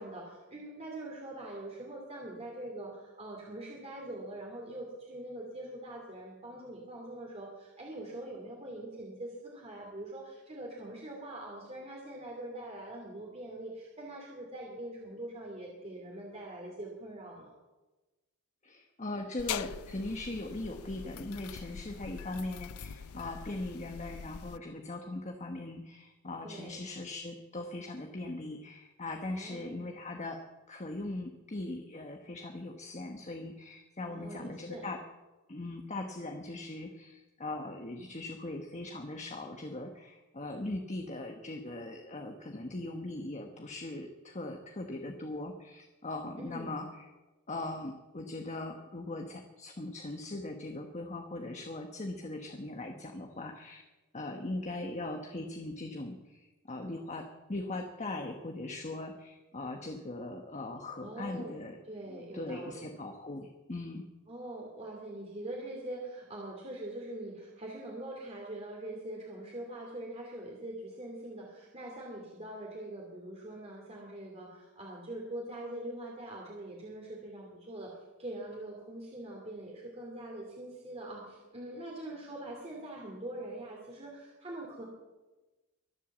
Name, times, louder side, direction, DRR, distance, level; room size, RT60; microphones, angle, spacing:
voice 1, 0.0-17.5 26.4-26.8 29.3-29.9 34.1-34.8 46.4-46.7 61.0-61.6 61.9-62.9 64.3-77.9 78.2-84.8, right 1 dB, 30° right, -1 dB, 2.7 m, -43 dB
voice 2, 18.6-35.0 35.5-47.0 47.5-53.8 54.1-61.8 62.1-64.0, left 2 dB, 30° left, 4 dB, 1.3 m, -40 dB
sound 1, 19.4-24.6, left 8 dB, 80° left, 0.5 m, -43 dB
23.5 x 8.2 x 7.4 m, 1.1 s
head